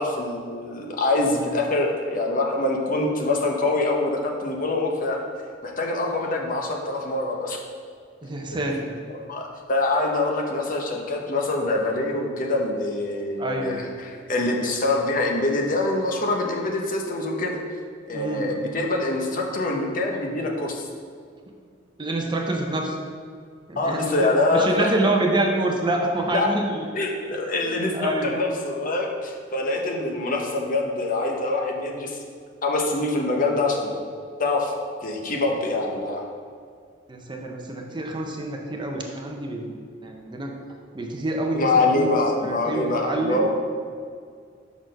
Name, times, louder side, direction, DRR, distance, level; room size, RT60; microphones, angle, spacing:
voice 1, 0.0-5.2 5.6-7.6 9.3-9.4 9.7-17.6 18.1-20.9 23.8-24.9 26.3-26.5 26.9-32.2 32.6-34.0 34.4-34.7 35.0-36.2 41.5-43.5, left 2 dB, 45° left, 1 dB, 0.8 m, -24 dB
voice 2, 8.2-8.9 13.4-13.8 18.1-18.5 22.0-23.0 23.7-26.9 27.6-28.3 37.1-40.5 40.9-42.1 42.4-43.5, right 1 dB, 25° right, 1 dB, 0.6 m, -27 dB
6.0 x 4.3 x 5.2 m, 2.1 s
head